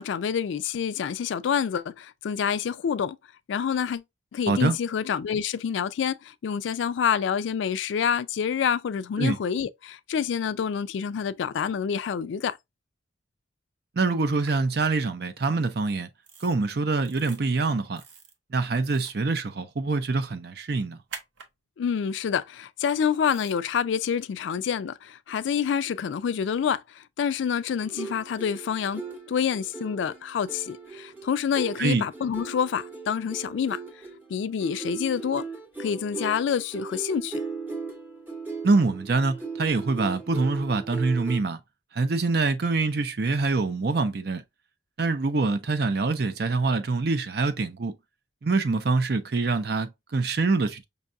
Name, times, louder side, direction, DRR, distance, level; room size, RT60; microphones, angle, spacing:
voice 1, 0.0-3.2 3.5-4.0 4.3-12.6 21.8-33.8 34.3-35.5 35.8-37.4, left 7 dB, 75° left, 0.3 m, -27 dB
voice 2, 14.0-16.1 16.4-18.0 18.5-21.0 31.8-32.1 38.6-41.6 41.9-44.4 45.0-47.9 48.4-50.8, right 3 dB, 55° right, 0.5 m, -25 dB
sound 1, 14.4-14.5 16.2-16.5 17.0-17.4 18.0-18.3 18.8-19.2 21.1-21.5 23.3-23.6, right 5 dB, 80° right, 0.8 m, -44 dB
sound 2, 27.8-41.4, right 4 dB, 10° right, 0.7 m, -38 dB
5.3 x 2.3 x 2.5 m
head